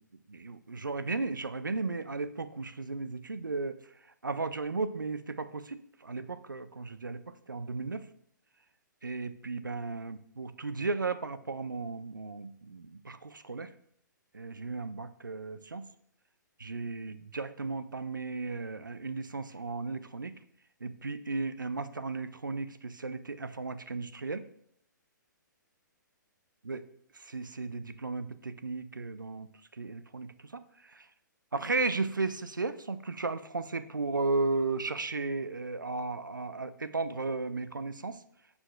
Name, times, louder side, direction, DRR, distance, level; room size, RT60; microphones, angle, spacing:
voice 1, 0.3-3.8 4.2-8.0 9.0-13.7 14.3-15.8 16.6-20.3 20.8-24.4 26.6-26.8 27.2-29.5 29.8-30.6 30.9-31.0 31.5-38.2, right 3 dB, 80° right, 13 dB, 0.6 m, -35 dB
14.0 x 7.0 x 2.2 m, 0.69 s
figure-of-eight pair, 120°, 10 cm